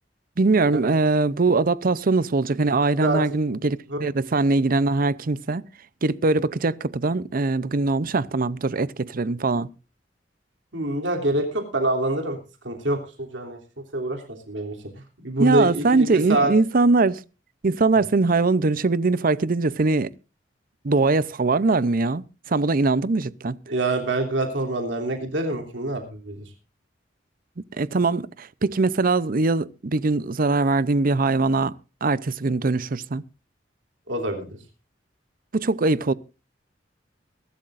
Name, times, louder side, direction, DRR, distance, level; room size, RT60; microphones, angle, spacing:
voice 1, 0.4-5.7 6.0-9.7 15.4-17.2 17.6-20.1 20.8-23.6 27.8-31.7 32.0-33.2 35.5-36.1, right 3 dB, 50° right, 0.6 m, -22 dB
voice 2, 10.7-12.4 12.6-13.6 13.9-14.8 15.2-16.5 23.7-26.4 34.1-34.6, right 2 dB, 80° right, 3.1 m, -25 dB
22.0 x 13.0 x 2.6 m
head